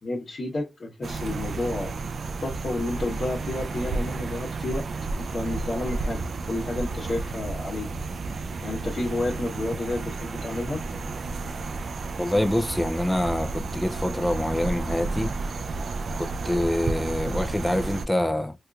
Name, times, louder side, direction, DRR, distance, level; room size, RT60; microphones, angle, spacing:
voice 1, 0.0-1.9 2.4-4.9 5.2-6.2 6.5-7.9 8.6-10.8, left 2 dB, 55° left, 1.0 m, -30 dB
sound 1, 1.0-18.1, right 3 dB, 70° right, 0.3 m, -32 dB
voice 2, 12.2-15.3 16.2-18.5, left 1 dB, 5° left, 0.4 m, -26 dB
4.3 x 2.4 x 2.3 m
wide cardioid pair, 165°, 0 cm